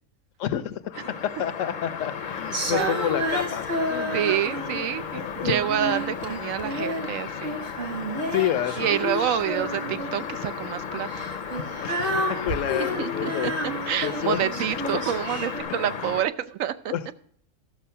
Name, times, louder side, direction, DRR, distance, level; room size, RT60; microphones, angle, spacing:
voice 1, 0.4-1.0 1.4-4.2 5.1-5.5 8.3-10.3 11.8-13.5 14.0-14.4 16.9-17.1, left 11 dB, 75° left, 13 dB, 1.0 m, -30 dB
sound 1, 0.9-16.2, left 6 dB, 45° left, 0.6 m, -34 dB
Female singing, 2.5-4.9 5.4-7.1 7.4-10.3 11.0-15.6, equal, 60° right, 2.1 m, -30 dB
voice 2, 4.1-7.6 8.8-11.1 13.0-13.5 13.9-16.9, right 10 dB, 80° right, 13 dB, 1.0 m, -27 dB
13.5 x 6.1 x 5.6 m, 0.65 s
omnidirectional pair, 1.4 m